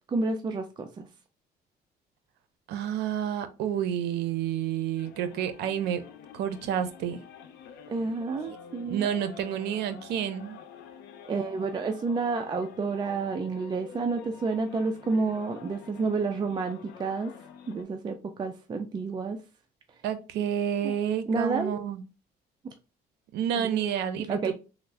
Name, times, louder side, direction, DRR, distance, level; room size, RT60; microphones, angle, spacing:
voice 1, 0.1-1.1 7.9-9.1 11.3-17.3 17.7-19.4 20.8-20.9 21.3-21.8 22.6-22.7 23.6-23.8 24.3-24.5, right 4 dB, 25° right, 0.4 m, -30 dB
voice 2, 2.7-6.0 6.3-7.2 8.5-8.6 8.9-10.6 20.0-22.0 23.3-24.5, right 9 dB, 80° right, 0.5 m, -29 dB
sound 1, 5.0-17.8, left 7 dB, 80° left, 0.6 m, -48 dB
3.6 x 2.0 x 3.2 m
cardioid pair, 110°, 17 cm